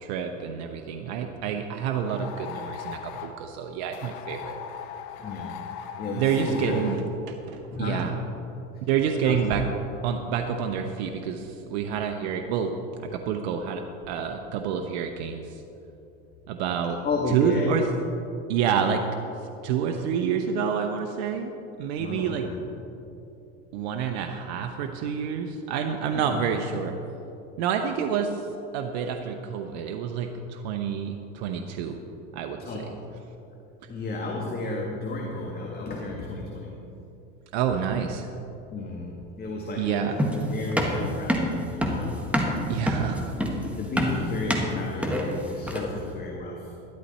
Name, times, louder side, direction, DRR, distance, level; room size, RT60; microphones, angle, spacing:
voice 1, 0.0-4.6 6.1-7.0 7.5-8.1 8.9-9.6 10.0-12.7 13.0-15.6 16.5-17.0 17.3-17.8 18.5-19.0 19.6-21.5 21.8-22.5 23.7-26.9 27.6-28.5 28.7-32.0 32.3-32.6 37.5-38.3 39.8-40.1 42.7-43.2, right 7 dB, 75° right, 5 dB, 0.9 m, -28 dB
sound 1, 2.0-3.4 3.9-7.0, left 9 dB, 70° left, 1.1 m, -39 dB
voice 2, 5.2-6.9 7.7-8.2 8.7-8.8 9.2-9.7 17.0-17.8 22.0-22.6 26.1-26.4 32.6-33.1 33.9-36.8 38.7-40.2 40.5-43.2 43.8-46.7, left 2 dB, 30° left, -1 dB, 1.7 m, -33 dB
sound 2, 40.2-46.0, equal, 5° right, 1.7 m, -26 dB
12.5 x 12.0 x 4.2 m, 2.9 s
supercardioid pair, 105°, 32 cm